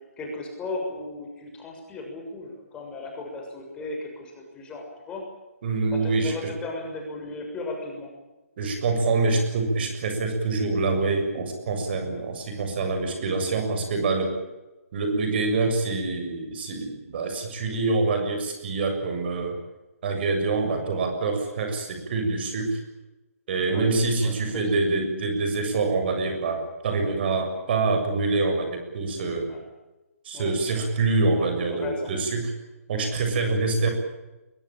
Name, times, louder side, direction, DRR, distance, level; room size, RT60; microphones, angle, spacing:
voice 1, 0.2-5.2 6.0-8.1 13.5-13.7 20.8-20.9 23.7-23.9 24.2-24.3 24.7-24.8 29.5-29.6 30.3-30.5 31.3-32.1 32.9-33.1, left 2 dB, 10° left, 1 dB, 6.8 m, -36 dB
voice 2, 5.6-6.5 8.6-14.4 14.9-19.6 20.0-22.8 23.5-29.5 30.2-32.5 32.9-33.9, right 3 dB, 40° right, 5 dB, 7.1 m, -25 dB
22.5 x 21.5 x 9.0 m, 1.0 s
figure-of-eight pair, 150°, 8 cm